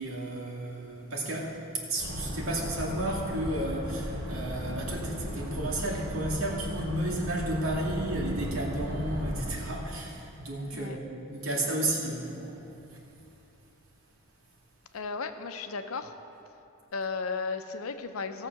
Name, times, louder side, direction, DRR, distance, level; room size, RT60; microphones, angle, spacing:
voice 1, 0.0-12.5 12.9-13.0, right 1 dB, 80° right, -3 dB, 2.3 m, -33 dB
Boat Water vehicle, 2.0-9.5, equal, 45° right, 3.3 m, -35 dB
voice 2, 14.9-16.1 16.9-18.5, left 4 dB, 90° left, 8 dB, 0.7 m, -34 dB
17.5 x 6.7 x 6.0 m, 2.9 s
head